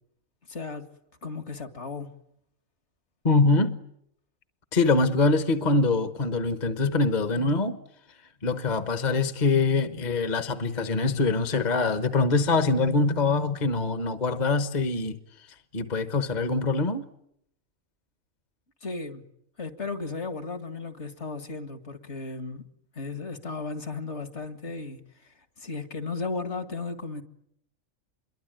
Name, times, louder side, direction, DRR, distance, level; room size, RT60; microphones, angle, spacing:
voice 1, 0.5-0.9 1.2-2.1 18.8-19.2 19.6-22.6 23.0-25.0 25.6-27.2, left 3 dB, 60° left, 2.3 m, -35 dB
voice 2, 3.2-3.8 4.7-7.8 8.4-15.2 15.7-17.1, left 3 dB, 35° left, 1.2 m, -24 dB
27.0 x 23.0 x 9.1 m
omnidirectional pair, 1.4 m